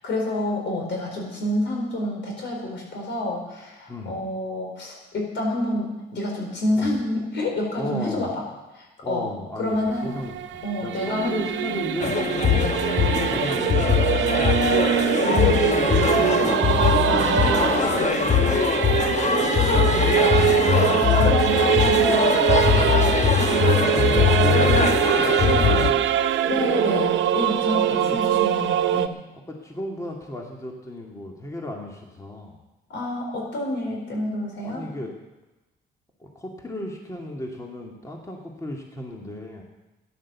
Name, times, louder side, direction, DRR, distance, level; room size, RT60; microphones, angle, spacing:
voice 1, 0.0-8.4 8.7-10.1 10.6-11.5 12.4-12.7 15.2-18.1 19.0-20.4 20.8-23.2 26.5-29.1 32.9-34.8, left 1 dB, 65° left, 0 dB, 4.5 m, -28 dB
voice 2, 3.9-4.2 6.8-6.9 7.8-8.3 9.0-9.8 10.0-12.2 12.9-14.8 16.1-17.6 23.9-24.9 25.2-26.1 27.8-28.2 29.5-32.6 34.6-35.1 36.2-39.6, left 1 dB, 15° left, 0 dB, 2.1 m, -35 dB
Singing / Musical instrument, 9.7-29.1, right 11 dB, 70° right, 0.7 m, -23 dB
sound 1, 12.0-25.9, left 6 dB, 35° left, 1.1 m, -21 dB
13.0 x 10.5 x 7.2 m, 1.1 s
cardioid pair, 90°, 20 cm